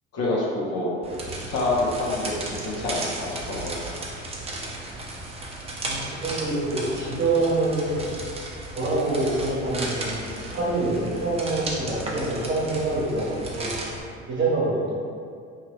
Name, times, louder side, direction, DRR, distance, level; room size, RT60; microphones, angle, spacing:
voice 1, 0.1-0.9 1.3-3.8 10.5-10.7, left 2 dB, 45° left, -5 dB, 0.8 m, -27 dB
sound 1, 1.0-14.0, right 2 dB, 20° right, 0.5 m, -35 dB
voice 2, 5.8-8.0 8.7-10.3 10.5-13.8 14.3-14.9, right 2 dB, 35° right, -6 dB, 1.1 m, -26 dB
2.8 x 2.4 x 3.2 m, 2.3 s
hypercardioid pair, 70°, 35 cm